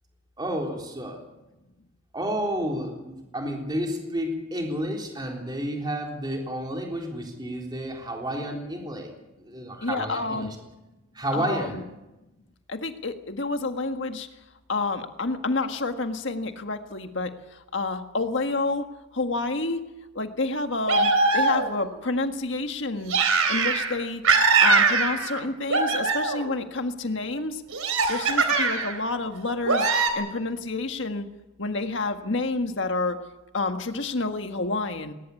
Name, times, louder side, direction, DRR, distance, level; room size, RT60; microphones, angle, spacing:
voice 1, 0.4-1.2 2.1-9.1 9.4-10.6 11.1-11.9, right 1 dB, 20° right, 1 dB, 3.7 m, -31 dB
voice 2, 9.8-10.5 11.3-11.8 12.7-14.3 14.7-18.9 19.1-19.8 20.1-23.1 23.5-24.2 24.6-27.6 28.1-29.9 30.1-31.3 31.6-33.2 33.5-35.1, left 3 dB, 60° left, 6 dB, 1.7 m, -29 dB
sound 1, 20.9-21.9 23.1-24.0 24.2-25.4 25.7-26.5 27.7-29.0 29.6-30.1, right 4 dB, 90° right, 3.6 m, -22 dB
20.0 x 19.5 x 8.5 m, 1.0 s
head